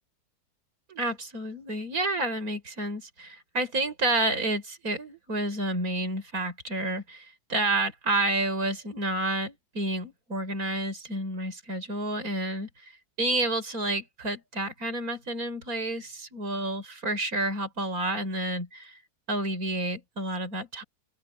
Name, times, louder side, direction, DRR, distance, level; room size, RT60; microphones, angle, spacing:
voice 1, 0.9-12.9 13.2-19.0 19.3-20.8, right 2 dB, 65° right, 5.9 m, -30 dB
omnidirectional pair, 1.6 m